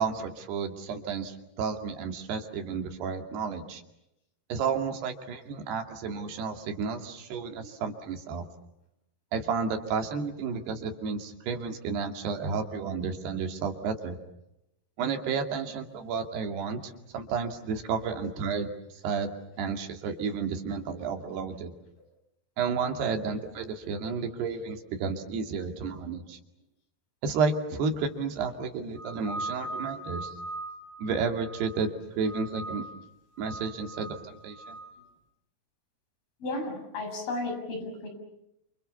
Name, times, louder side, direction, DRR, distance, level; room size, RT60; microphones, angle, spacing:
voice 1, 0.0-3.8 4.5-8.4 9.3-14.2 15.0-18.7 19.0-21.7 22.6-26.4 27.2-30.3 31.0-32.8 33.4-34.8, right 5 dB, 75° right, 4 dB, 4.5 m, -32 dB
sound 1, 29.0-31.9 32.2-33.0 33.4-34.9, right 2 dB, 35° right, 7.0 m, -40 dB
voice 2, 36.4-38.1, left 2 dB, 60° left, 3 dB, 8.8 m, -34 dB
29.0 x 28.0 x 7.0 m, 0.84 s
omnidirectional pair, 4.8 m